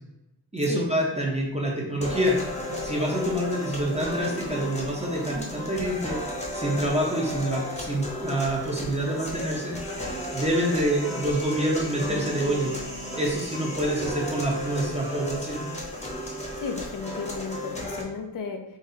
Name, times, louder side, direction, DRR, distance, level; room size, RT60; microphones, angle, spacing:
voice 1, 0.5-2.4 2.8-6.2 6.5-9.8 10.3-12.7 13.2-15.6, right 1 dB, 15° right, -3 dB, 0.7 m, -27 dB
sound 1, 2.0-18.0, left 1 dB, 15° left, 0.9 m, -34 dB
voice 2, 16.6-18.6, left 5 dB, 50° left, 5 dB, 0.5 m, -34 dB
4.0 x 2.6 x 3.8 m, 0.88 s
wide cardioid pair, 125°, 42 cm